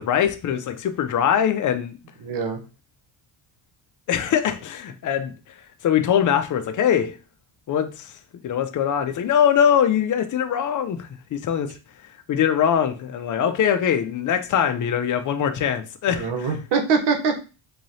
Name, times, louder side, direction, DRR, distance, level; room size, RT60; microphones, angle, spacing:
voice 1, 0.0-2.0 4.1-5.3 5.8-7.1 7.7-8.1 8.4-11.7 12.3-16.3, left 8 dB, 40° left, 0.5 m, -22 dB
voice 2, 2.2-2.6 16.1-17.4, right 5 dB, 55° right, 1.0 m, -23 dB
3.8 x 3.1 x 2.7 m
cardioid pair, 115°, 48 cm